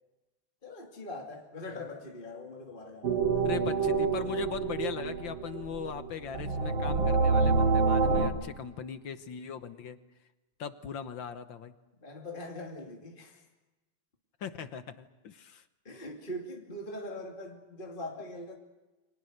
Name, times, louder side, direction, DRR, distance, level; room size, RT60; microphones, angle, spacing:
voice 1, 0.6-3.6 12.0-13.4 15.8-18.6, left 1 dB, 25° left, 0 dB, 2.7 m, -42 dB
sound 1, 3.0-8.3, right 4 dB, 65° right, 3.0 m, -27 dB
voice 2, 3.4-10.0 10.6-11.7 14.4-15.6, left 7 dB, 65° left, 10 dB, 1.7 m, -39 dB
29.5 x 25.0 x 6.7 m, 1.1 s
omnidirectional pair, 2.3 m